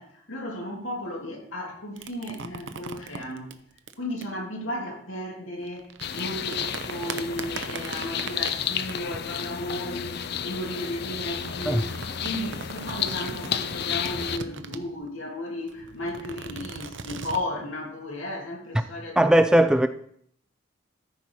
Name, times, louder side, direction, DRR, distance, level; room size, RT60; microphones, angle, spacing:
voice 1, 0.0-3.5 4.0-19.3, left 1 dB, 80° left, 2.7 m, -34 dB
sound 1, 2.0-4.2 5.6-10.5 11.2-15.0 15.7-17.4, right 4 dB, 65° right, 0.7 m, -39 dB
sound 2, 6.0-14.4, left 8 dB, 55° left, 0.5 m, -32 dB
voice 2, 19.2-19.9, right 1 dB, 5° right, 0.3 m, -18 dB
14.0 x 5.6 x 4.7 m
head